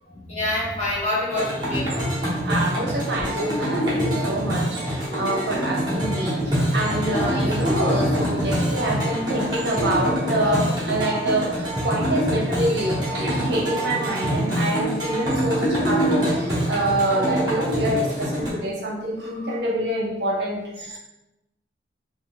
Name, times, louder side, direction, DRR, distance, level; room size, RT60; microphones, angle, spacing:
voice 1, 0.1-2.4, left 1 dB, 35° left, -8 dB, 1.2 m, -27 dB
sound 1, 1.3-18.5, equal, 25° right, 1.1 m, -26 dB
voice 2, 2.5-21.0, right 1 dB, 60° right, -2 dB, 0.7 m, -26 dB
sound 2, 2.9-18.5, left 1 dB, 60° left, 1.0 m, -31 dB
3.6 x 2.7 x 2.4 m, 0.96 s
head